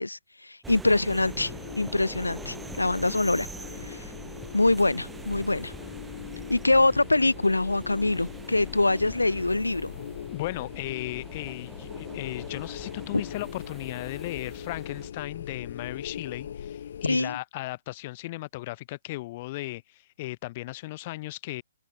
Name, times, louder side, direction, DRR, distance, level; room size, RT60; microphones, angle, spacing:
voice 1, 0.0-1.5 1.8-3.5 3.9-4.0 4.5-5.7 6.5-9.9 17.0-17.4, left 2 dB, 80° left, 1.5 m, -24 dB
sound 1, 0.6-15.1, right 4 dB, 5° right, 4.4 m, -44 dB
sound 2, 1.2-17.2, left 9 dB, 50° left, 3.8 m, -41 dB
voice 2, 10.3-21.6, left 19 dB, 35° left, 6.1 m, -36 dB
open air
figure-of-eight pair, 125°, 0 cm